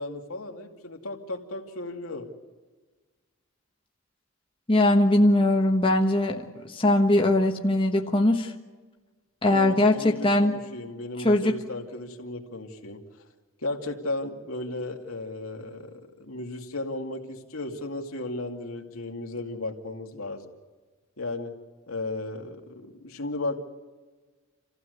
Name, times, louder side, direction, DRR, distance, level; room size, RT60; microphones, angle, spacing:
voice 1, 0.0-2.3 9.4-13.0 13.6-20.5 21.2-21.5 21.9-23.6, left 2 dB, 80° left, 2 dB, 2.6 m, -35 dB
voice 2, 4.7-8.5 9.4-10.6 11.2-11.6, left 1 dB, 25° left, 2 dB, 1.2 m, -21 dB
28.0 x 15.5 x 8.1 m, 1.3 s
head